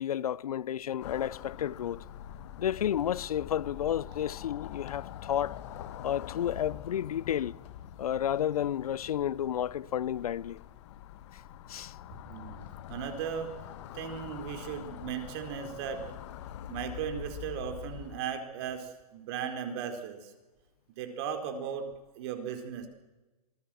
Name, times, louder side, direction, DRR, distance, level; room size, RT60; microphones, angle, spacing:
voice 1, 0.0-2.0 2.6-5.6 6.0-7.6 8.0-10.6 11.3-11.4 11.7-11.9, left 10 dB, 70° left, 0.8 m, -31 dB
sound 1, 1.0-18.2, left 11 dB, 50° left, 2.0 m, -45 dB
voice 2, 12.1-13.5 13.9-16.0 16.7-20.3 21.0-21.9 22.2-22.9, right 8 dB, 45° right, 4.2 m, -37 dB
27.0 x 19.0 x 7.7 m
hypercardioid pair, 135°, 20 cm